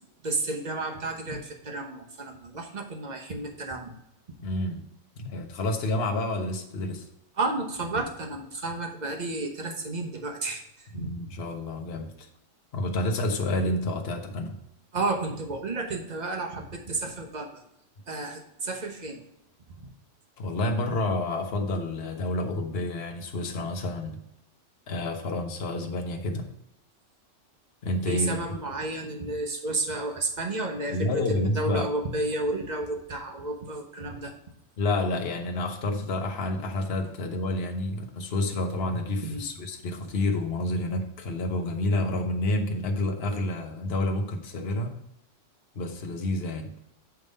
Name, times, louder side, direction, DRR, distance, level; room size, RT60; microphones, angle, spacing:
voice 1, 0.2-3.9 7.4-11.1 14.9-17.6 18.1-19.2 19.7-19.9 28.1-34.3 39.2-39.5, right 2 dB, 35° right, 3 dB, 1.1 m, -32 dB
voice 2, 4.4-4.8 5.2-7.1 10.9-12.3 12.7-14.6 20.4-24.2 24.9-26.5 27.8-28.4 30.9-31.9 34.8-45.0 45.7-46.7, left 1 dB, 55° left, 4 dB, 1.1 m, -29 dB
8.2 x 3.5 x 5.3 m, 0.81 s
omnidirectional pair, 1.3 m